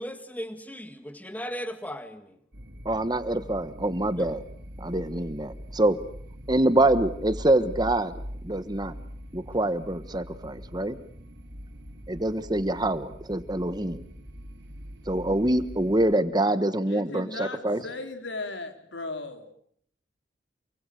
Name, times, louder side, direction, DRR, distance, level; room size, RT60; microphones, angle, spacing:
voice 1, 0.0-2.4 4.2-4.3, equal, 10° left, 1.7 m, -37 dB
sound 1, 2.5-16.1, equal, 65° right, 5.2 m, -42 dB
voice 2, 2.8-4.4 4.8-6.0 6.5-8.1 8.4-8.9 9.3-11.0 12.1-14.0 15.1-17.8, right 1 dB, 20° right, 1.4 m, -25 dB
voice 3, 16.9-19.5, left 2 dB, 75° left, 4.0 m, -37 dB
29.0 x 24.5 x 6.6 m
head